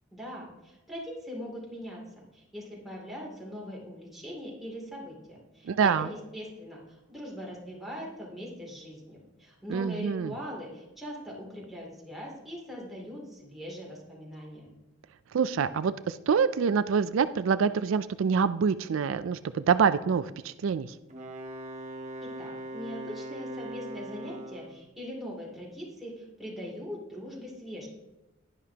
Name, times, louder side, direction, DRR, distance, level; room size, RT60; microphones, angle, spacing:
voice 1, 0.1-2.0 2.3-6.8 7.1-14.7 22.2-27.9, equal, ahead, -5 dB, 2.7 m, -41 dB
voice 2, 5.7-6.1 9.7-10.3 15.3-20.9, right 6 dB, 80° right, 13 dB, 0.4 m, -26 dB
Wind instrument woodwind instrument, 21.1-24.8, right 1 dB, 35° right, 1.3 m, -40 dB
11.0 x 11.0 x 2.8 m, 1.0 s
head